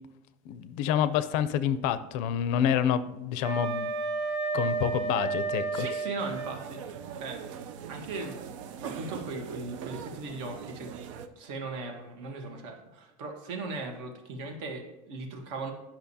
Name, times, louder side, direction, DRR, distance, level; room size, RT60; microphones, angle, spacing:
voice 1, 0.5-3.9 4.5-5.9, left 9 dB, 55° left, 14 dB, 0.4 m, -28 dB
Wind instrument woodwind instrument, 3.4-6.6, right 4 dB, 45° right, 1.8 m, -31 dB
voice 2, 5.7-7.4 7.9-8.4 8.8-10.9 11.4-15.7, right 3 dB, 70° right, 3 dB, 1.4 m, -38 dB
sound 1, 6.2-11.3, right 7 dB, 90° right, 0.6 m, -41 dB
10.5 x 5.8 x 2.8 m, 0.94 s
cardioid pair, 170°, 16 cm